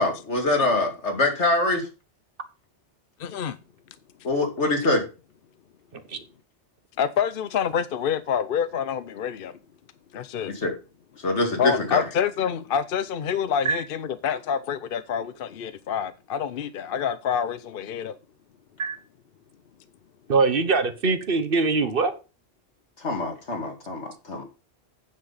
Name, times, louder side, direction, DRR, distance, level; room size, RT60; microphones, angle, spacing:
voice 1, 0.0-1.9 4.2-5.1 10.6-10.7 11.2-12.0 23.0-24.4, left 2 dB, 90° left, 2.5 m, -24 dB
voice 2, 3.2-3.6 7.0-9.6 10.1-10.5 11.6-18.2, left 8 dB, 60° left, 0.8 m, -27 dB
voice 3, 20.3-22.1, right 4 dB, 55° right, 1.3 m, -23 dB
8.9 x 7.7 x 4.0 m
omnidirectional pair, 1.1 m